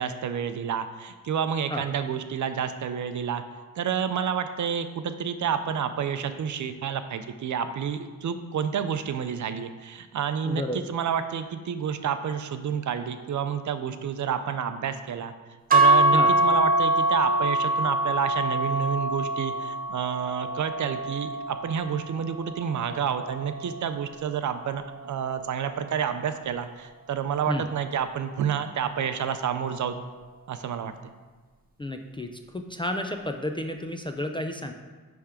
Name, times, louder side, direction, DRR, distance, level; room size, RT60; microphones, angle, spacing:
voice 1, 0.0-3.4 3.8-15.3 15.7-30.0 30.5-31.1, right 7 dB, 60° right, 9 dB, 0.5 m, -29 dB
voice 2, 10.4-10.8 16.1-16.3 27.5-27.6 31.8-34.7, left 1 dB, 15° left, 4 dB, 0.3 m, -31 dB
sound 1, 15.7-23.9, right 1 dB, 25° right, 0.8 m, -25 dB
10.0 x 3.5 x 5.0 m, 1.4 s
wide cardioid pair, 170°, 34 cm